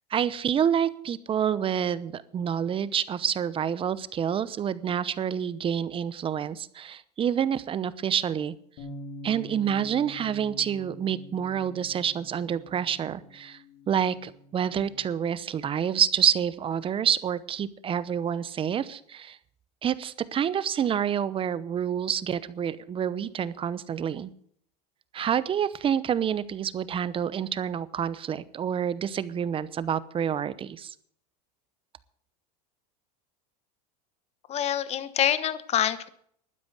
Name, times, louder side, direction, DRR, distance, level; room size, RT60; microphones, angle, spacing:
voice 1, 0.1-8.5 9.2-13.6 13.9-19.4 19.8-24.3 25.1-30.9, right 8 dB, 25° right, 17 dB, 0.8 m, -28 dB
Bass guitar, 8.8-15.0, equal, 65° left, 3.6 m, -45 dB
voice 2, 34.5-36.1, left 10 dB, 30° left, 14 dB, 1.1 m, -26 dB
12.0 x 9.8 x 8.1 m, 0.62 s
supercardioid pair, 120°, 20 cm